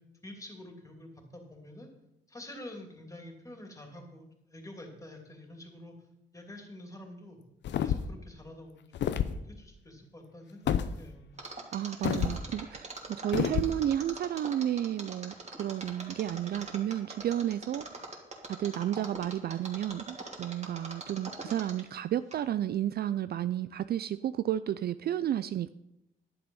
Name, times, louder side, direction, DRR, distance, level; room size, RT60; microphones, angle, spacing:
voice 1, 0.2-1.9 2.3-5.9 6.3-7.4 7.8-11.3, left 1 dB, 15° left, 3 dB, 2.8 m, -48 dB
sound 1, 7.6-8.2 8.9-9.4 10.7-10.9 12.0-12.4 13.3-13.7, left 9 dB, 65° left, 0.7 m, -28 dB
Mechanisms, 11.4-22.0 22.3-22.4, right 3 dB, 35° right, 2.7 m, -42 dB
voice 2, 11.7-18.1 18.5-25.7, right 11 dB, 55° right, 13 dB, 0.4 m, -32 dB
11.0 x 8.8 x 5.5 m, 0.88 s
cardioid pair, 90°, 20 cm